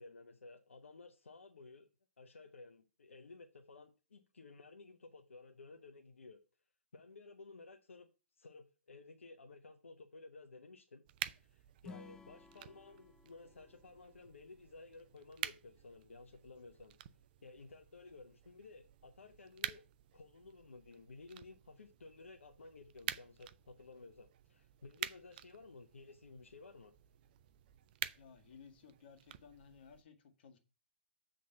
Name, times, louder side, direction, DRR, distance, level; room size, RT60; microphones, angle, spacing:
voice 1, 0.0-1.9 2.2-6.4 6.9-8.1 8.4-11.0 11.4-17.0 17.4-19.8 20.1-26.9, left 3 dB, 85° left, 0.8 m, -55 dB
sound 1, 11.1-30.0, right 12 dB, 45° right, 0.5 m, -49 dB
Acoustic guitar / Strum, 11.8-15.1, left 5 dB, 10° left, 0.4 m, -57 dB
voice 2, 28.2-30.6, left 6 dB, 55° left, 1.8 m, -58 dB
7.6 x 3.9 x 5.6 m
hypercardioid pair, 130°, 7 cm